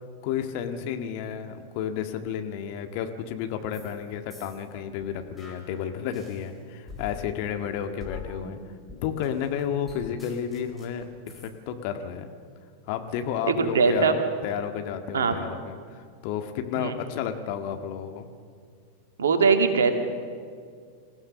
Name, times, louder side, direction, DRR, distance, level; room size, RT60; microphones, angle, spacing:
voice 1, 0.2-8.6 9.0-12.3 12.9-14.2 14.4-18.3, left 8 dB, 45° left, 6 dB, 1.8 m, -32 dB
sound 1, 3.7-4.0 4.3-6.5 6.9-11.5, left 4 dB, 10° left, 4.8 m, -44 dB
voice 2, 13.4-14.1 15.1-15.4 16.8-17.0 19.2-19.9, right 5 dB, 65° right, 6 dB, 2.2 m, -21 dB
27.0 x 16.0 x 6.8 m, 2.1 s
figure-of-eight pair, 90°, 0 cm